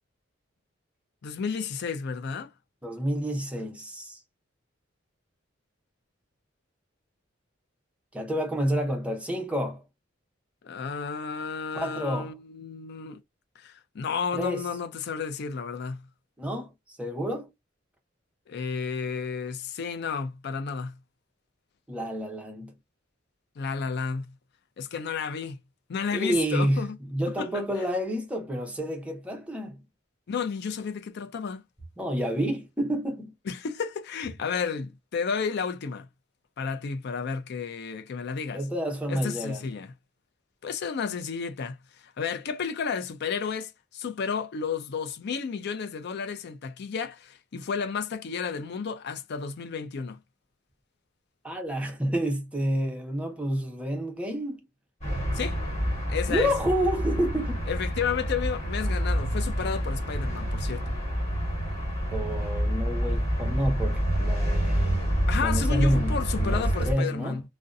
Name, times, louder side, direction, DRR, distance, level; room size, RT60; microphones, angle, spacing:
voice 1, 1.2-2.5 10.6-13.2 13.6-16.1 18.5-21.0 23.6-24.3 24.8-25.6 25.9-27.0 27.4-27.5 30.3-31.6 33.5-36.1 36.6-38.6 39.1-39.9 40.6-41.8 42.0-50.2 55.3-55.6 56.1-56.5 57.7-61.0 65.3-67.4, left 6 dB, 60° left, 0.4 m, -32 dB
voice 2, 2.8-4.2 8.1-9.8 11.7-12.3 14.3-14.6 16.4-17.5 21.9-22.7 26.1-29.8 32.0-33.3 38.5-39.7 51.4-54.6 56.3-57.6 62.1-67.4, equal, 5° right, 0.6 m, -29 dB
sound 1, 55.0-66.9, equal, 35° left, 1.4 m, -27 dB
2.6 x 2.1 x 2.3 m
head